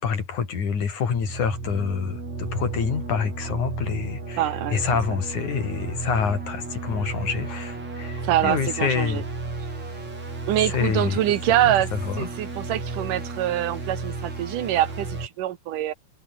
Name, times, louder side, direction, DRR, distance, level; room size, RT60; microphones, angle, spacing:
voice 1, 0.0-4.4 4.7-9.2 10.7-11.2 11.6-12.3, left 6 dB, 70° left, 4.9 m, -27 dB
sound 1, 1.1-15.3, right 3 dB, 55° right, 9.4 m, -33 dB
voice 2, 4.4-4.8 5.1-5.2 8.2-9.2 10.5-11.9 12.2-15.9, right 13 dB, 85° right, 2.9 m, -24 dB
omnidirectional pair, 3.6 m